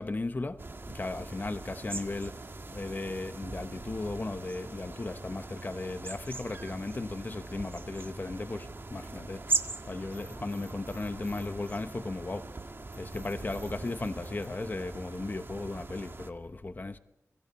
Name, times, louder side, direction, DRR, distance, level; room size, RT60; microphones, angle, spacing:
voice 1, 0.0-2.4 2.7-9.6 9.8-12.6 12.9-17.0, left 2 dB, 35° left, 1.0 m, -36 dB
sound 1, 0.6-16.3, right 3 dB, 45° right, 1.7 m, -40 dB
sound 2, 10.1-12.4 12.9-15.4, right 1 dB, 10° right, 4.1 m, -53 dB
27.0 x 24.0 x 4.3 m
wide cardioid pair, 90°, 5 cm